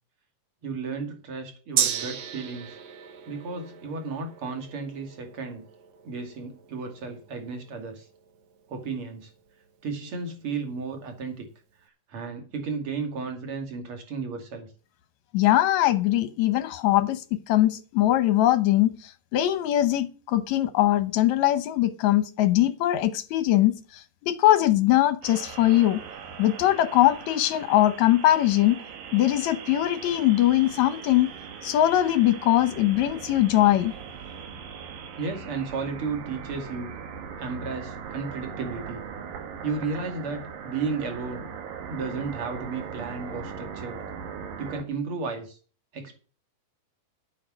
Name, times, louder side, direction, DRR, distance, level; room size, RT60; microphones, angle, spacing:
voice 1, 0.6-2.8 3.3-5.6 6.0-8.1 8.7-9.3 9.8-11.5 12.1-14.7 35.2-36.9 37.4-39.0 39.6-41.5 41.9-44.0 44.6-45.6 45.9-46.1, right 4 dB, 40° right, 3.1 m, -33 dB
Gong, 1.8-9.5 9.9-10.0, right 8 dB, 60° right, 2.1 m, -35 dB
voice 2, 15.3-19.0 19.3-26.0 26.4-28.8 29.1-31.3 31.6-33.9, left 14 dB, 70° left, 1.9 m, -21 dB
sound 1, 25.2-44.8, right 6 dB, 80° right, 3.2 m, -40 dB
11.0 x 8.6 x 6.2 m
omnidirectional pair, 3.9 m